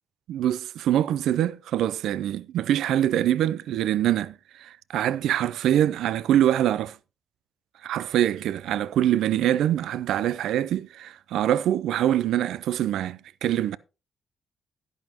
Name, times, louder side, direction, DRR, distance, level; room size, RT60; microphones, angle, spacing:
voice 1, 0.3-7.0 7.8-13.8, right 11 dB, 75° right, 0.4 m, -24 dB
11.0 x 10.5 x 2.9 m
supercardioid pair, 50°, 0 cm